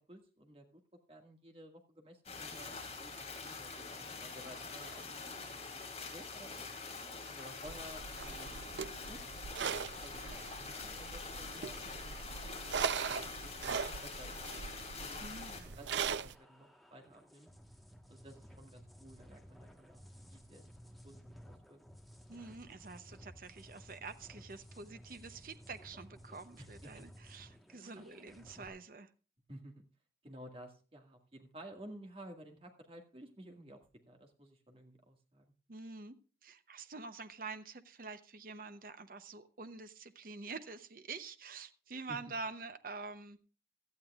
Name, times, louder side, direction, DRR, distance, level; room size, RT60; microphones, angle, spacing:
voice 1, 0.1-0.8 1.1-5.5 5.7-6.7 7.3-8.6 9.1-9.2 9.6-13.8 14.0-14.4 15.0-17.5 18.1-20.7 21.0-21.2 21.5-21.8 26.6-27.0 27.8-28.1 29.5-29.8 30.2-33.8 34.1-35.5 42.1-42.2, right 1 dB, 30° right, 3 dB, 1.9 m, -54 dB
sound 1, 2.3-15.6, left 4 dB, 35° left, 2.9 m, -45 dB
sound 2, 7.7-16.3, right 6 dB, 85° right, 0.5 m, -40 dB
voice 2, 15.2-15.7 22.3-29.1 35.7-36.1 36.4-43.4, right 4 dB, 50° right, 10 dB, 0.8 m, -47 dB
sound 3, 15.4-28.7, equal, ahead, 1.2 m, -56 dB
17.0 x 12.0 x 2.4 m, 0.36 s
head